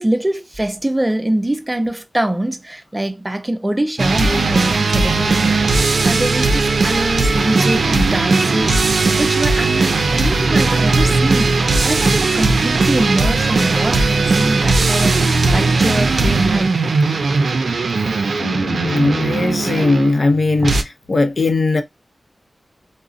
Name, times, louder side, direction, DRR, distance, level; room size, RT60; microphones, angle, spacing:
voice 1, 0.0-5.6 6.0-16.8, right 1 dB, 20° right, 0.5 m, -23 dB
sound 1, 4.0-20.8, right 3 dB, 85° right, 0.4 m, -17 dB
voice 2, 18.4-21.8, left 3 dB, 60° left, 0.6 m, -18 dB
3.7 x 2.0 x 2.4 m
cardioid pair, 55°, 0 cm